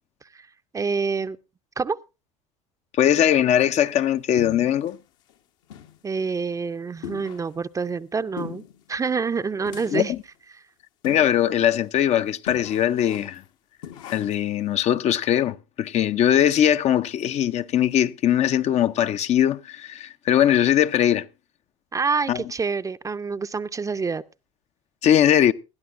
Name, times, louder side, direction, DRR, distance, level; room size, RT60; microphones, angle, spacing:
voice 1, 0.7-1.4 1.8-2.0 6.0-8.6 8.9-10.1 10.5-10.6 21.9-24.2, right 5 dB, 20° right, 0.6 m, -27 dB
voice 2, 3.0-5.0 9.9-10.2 11.0-13.4 14.1-21.3 22.3-22.4 25.0-25.5, left 10 dB, 40° left, 0.6 m, -20 dB
sound 1, 4.4-4.9 5.3-5.4 5.7-6.0 6.3-6.4 7.0-7.6 8.4-8.8 9.7-10.2 11.0-11.5 11.8-11.9 12.5-13.4 13.8-14.5, left 10 dB, 65° left, 1.2 m, -39 dB
20.5 x 12.5 x 2.5 m
hypercardioid pair, 70°, 17 cm